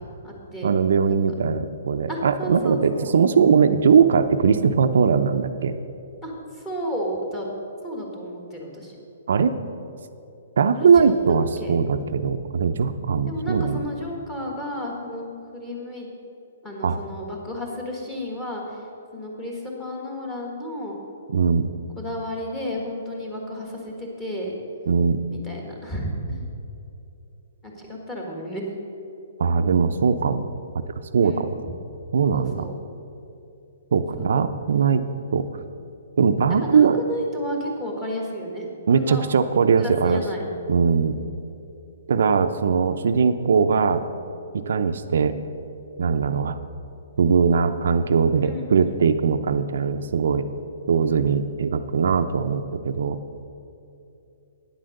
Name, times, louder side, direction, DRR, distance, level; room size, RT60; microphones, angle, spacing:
voice 1, 0.0-0.7 1.1-1.2 2.1-3.2 6.2-7.5 7.8-8.9 10.7-11.8 13.3-16.1 16.6-18.8 19.1-20.9 22.0-24.5 25.3-26.5 27.6-28.7 31.2-31.5 32.3-32.7 34.1-34.4 36.5-38.6 38.9-39.2 39.8-40.4 48.4-48.9, equal, 10° left, -1 dB, 1.5 m, -32 dB
voice 2, 0.6-5.8 9.3-9.6 10.6-13.8 16.8-17.0 21.3-21.7 24.9-25.2 29.4-30.5 31.1-31.5 32.1-32.6 33.9-35.0 35.3-35.4 36.2-37.0 38.9-40.2 40.7-41.2 42.1-44.0 44.5-45.4 46.0-46.6 47.2-50.5 50.9-53.2, right 6 dB, 65° right, 9 dB, 0.5 m, -20 dB
9.6 x 7.8 x 6.5 m, 2.8 s
hypercardioid pair, 165°, 0 cm